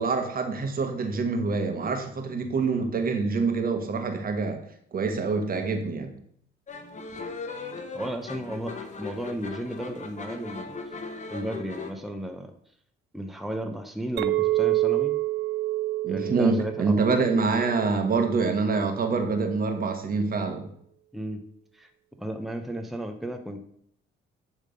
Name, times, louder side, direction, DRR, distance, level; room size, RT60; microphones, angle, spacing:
voice 1, 0.0-4.6 4.9-6.1 16.0-20.7, right 4 dB, 45° right, 6 dB, 1.4 m, -26 dB
sound 1, 6.7-11.9, left 4 dB, 35° left, 1.1 m, -38 dB
voice 2, 7.9-11.0 11.3-12.5 13.1-15.2 16.1-17.0 21.1-21.4 21.7-21.9 22.2-23.6, right 1 dB, ahead, 5 dB, 0.8 m, -34 dB
Chink clink, 14.2-18.7, right 17 dB, 65° right, 0.4 m, -28 dB
10.5 x 3.6 x 5.2 m, 0.68 s
cardioid pair, 90°, 20 cm